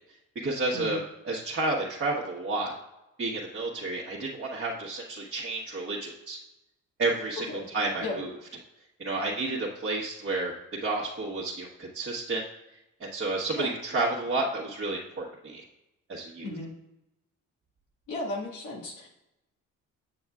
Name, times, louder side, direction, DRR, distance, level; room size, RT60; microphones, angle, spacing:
voice 1, 0.3-1.0 1.2-2.7 3.2-6.4 7.0-7.4 7.7-8.3 9.0-10.5 10.8-12.4 13.0-15.6 16.1-16.5, right 2 dB, 40° right, -5 dB, 1.3 m, -31 dB
voice 2, 18.1-19.1, left 2 dB, 80° left, -1 dB, 1.7 m, -35 dB
7.9 x 6.9 x 2.4 m, 0.92 s
cardioid pair, 90°, 30 cm